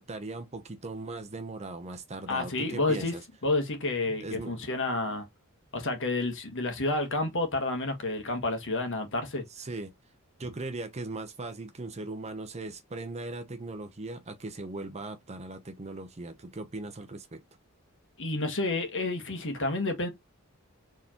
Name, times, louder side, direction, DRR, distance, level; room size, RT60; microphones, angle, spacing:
voice 1, 0.0-3.2 4.1-4.7 9.5-9.9 10.4-17.4, right 2 dB, 30° right, 0.7 m, -39 dB
voice 2, 2.3-3.1 3.4-5.2 5.7-9.4 18.2-20.1, left 2 dB, 60° left, 1.5 m, -30 dB
4.5 x 3.6 x 2.9 m
head